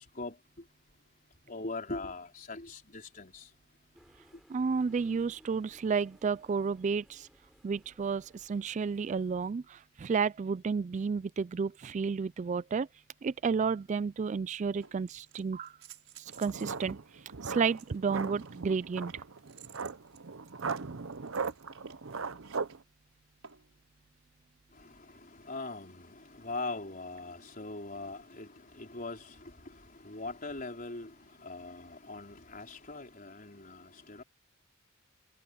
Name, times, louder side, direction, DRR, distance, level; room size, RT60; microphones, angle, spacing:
voice 1, 1.5-3.4 25.4-28.5 28.7-29.3 30.0-31.1 31.4-34.2, left 3 dB, 40° left, 4.4 m, -41 dB
sound 1, 3.9-9.5, equal, ahead, 5.9 m, -63 dB
voice 2, 4.5-7.2 7.6-8.2 8.5-9.6 10.0-12.9 13.2-15.7 16.4-17.0 17.5-19.1, right 5 dB, 35° right, 0.3 m, -31 dB
sound 2, 13.8-13.9 14.8-16.9 17.7-22.8 23.4-23.8 25.4-25.5, right 10 dB, 90° right, 6.1 m, -55 dB
sound 3, 16.3-22.8, right 5 dB, 70° right, 0.8 m, -38 dB
head